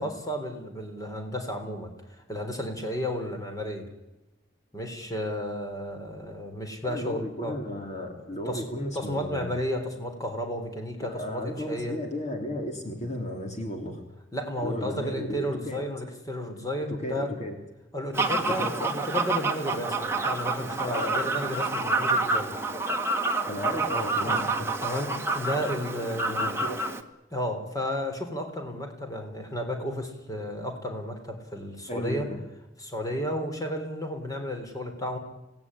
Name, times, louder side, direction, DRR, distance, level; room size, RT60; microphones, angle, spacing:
voice 1, 0.0-3.9 4.7-7.6 8.5-8.7 8.9-12.0 14.3-17.3 17.9-22.5 24.2-26.5 27.3-32.3 32.8-35.2, equal, 20° left, 4 dB, 3.8 m, -33 dB
voice 2, 6.8-9.5 11.0-14.0 14.6-15.8 16.9-17.5 18.4-18.9 20.9-21.3 23.5-24.7 26.3-26.9 31.9-32.4, left 1 dB, 40° left, 3 dB, 3.2 m, -34 dB
Fowl, 18.1-27.0, right 3 dB, 15° right, 1.7 m, -28 dB
25.5 x 18.0 x 9.9 m, 1.0 s
head